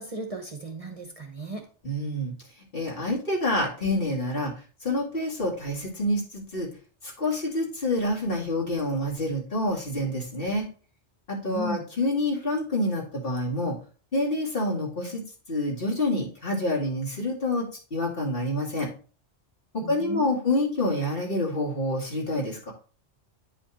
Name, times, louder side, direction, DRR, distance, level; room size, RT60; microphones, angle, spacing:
voice 1, 0.0-1.7 11.5-11.9 19.8-20.4, right 1 dB, 35° right, 4 dB, 0.9 m, -35 dB
voice 2, 1.8-2.3 2.7-4.5 4.8-6.7 7.0-10.7 11.3-13.8 14.1-15.2 15.5-18.9 19.7-22.7, left 1 dB, 55° left, -2 dB, 2.4 m, -27 dB
9.4 x 5.1 x 2.9 m, 0.38 s
omnidirectional pair, 1.2 m